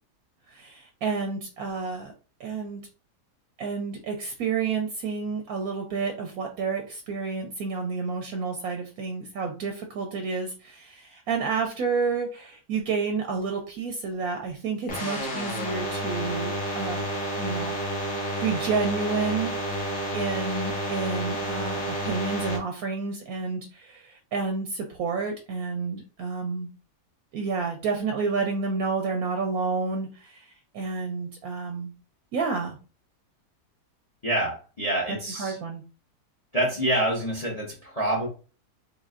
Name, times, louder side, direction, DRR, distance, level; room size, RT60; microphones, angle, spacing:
voice 1, 0.5-2.1 2.4-2.8 3.6-17.0 17.4-17.8 18.4-26.7 27.3-31.9 32.3-32.8 35.1-35.8, right 4 dB, 70° right, 3 dB, 1.0 m, -30 dB
sound 1, 14.9-22.6, equal, 55° left, 1.6 m, -30 dB
voice 2, 34.2-35.6 36.5-38.3, right 1 dB, 30° left, -2 dB, 0.8 m, -27 dB
4.1 x 3.3 x 2.4 m, 0.35 s
omnidirectional pair, 1.8 m